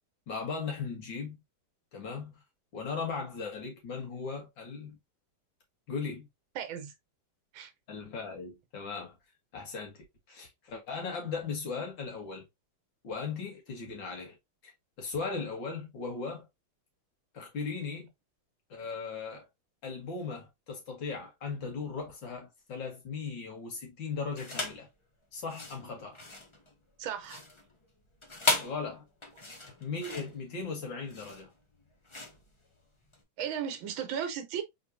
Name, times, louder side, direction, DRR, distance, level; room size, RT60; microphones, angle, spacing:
voice 1, 0.3-1.4 1.9-2.3 2.7-5.0 5.9-6.3 7.9-9.1 9.5-12.4 13.0-14.4 15.0-16.5 17.3-18.1 18.7-19.5 19.8-24.9 25.3-26.2 28.6-29.0 29.8-31.5, left 4 dB, 70° left, 2.4 m, -37 dB
voice 2, 6.5-6.9 7.5-7.7 27.0-27.4 33.4-34.6, right 8 dB, 80° right, 1.7 m, -35 dB
sound 1, 24.3-24.9 25.4-33.2, left 2 dB, 50° left, 0.3 m, -36 dB
4.3 x 4.0 x 2.7 m
omnidirectional pair, 2.2 m